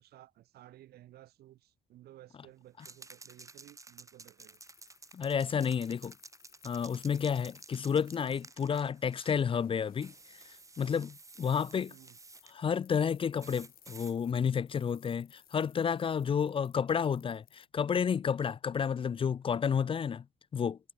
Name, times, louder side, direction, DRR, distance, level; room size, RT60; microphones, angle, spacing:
voice 1, 0.0-4.6 11.9-12.1, right 14 dB, 70° right, 2.1 m, -56 dB
sound 1, 2.8-9.4 10.0-12.5 13.4-14.1, right 3 dB, 20° right, 2.8 m, -53 dB
sound 2, 4.2-17.7, left 11 dB, 60° left, 5.5 m, -63 dB
voice 2, 5.1-6.1 6.6-10.1 10.8-11.9 12.5-20.2 20.5-20.8, left 7 dB, 30° left, 0.6 m, -31 dB
cardioid pair, 110°, 17 cm